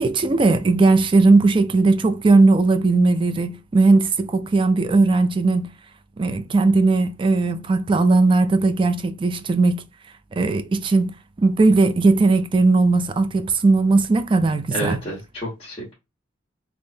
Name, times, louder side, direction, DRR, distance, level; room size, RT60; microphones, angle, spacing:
voice 1, 0.0-5.7 6.2-9.8 10.4-15.0, right 3 dB, 25° right, 0.3 m, -18 dB
voice 2, 14.7-15.9, equal, 30° left, 1.4 m, -30 dB
3.7 x 2.9 x 2.6 m
head